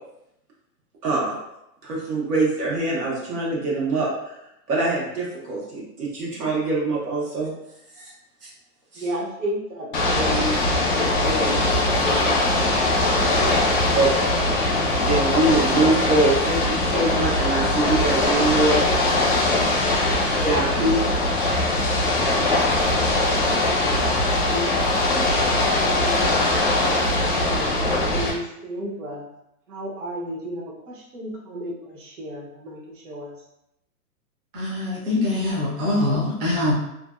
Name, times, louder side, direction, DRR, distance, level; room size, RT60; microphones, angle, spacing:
voice 1, 1.0-1.4 1.8-4.1 4.7-7.5 8.0-8.1 8.9-9.0 13.9-14.3 15.0-18.9 20.4-21.1, right 2 dB, 80° right, -5 dB, 1.3 m, -23 dB
voice 2, 9.0-10.6 10.8-11.7 12.0-13.3 24.5-25.3 25.7-26.6 27.0-27.7 28.1-29.3 29.7-33.4, equal, 55° right, -5 dB, 0.9 m, -32 dB
Ocean / Boat Water vehicle, 9.9-28.3, left 2 dB, 35° left, 0.4 m, -21 dB
voice 3, 34.5-36.7, left 2 dB, 35° right, -7 dB, 0.5 m, -23 dB
2.6 x 2.2 x 2.4 m, 0.83 s
hypercardioid pair, 175°, 46 cm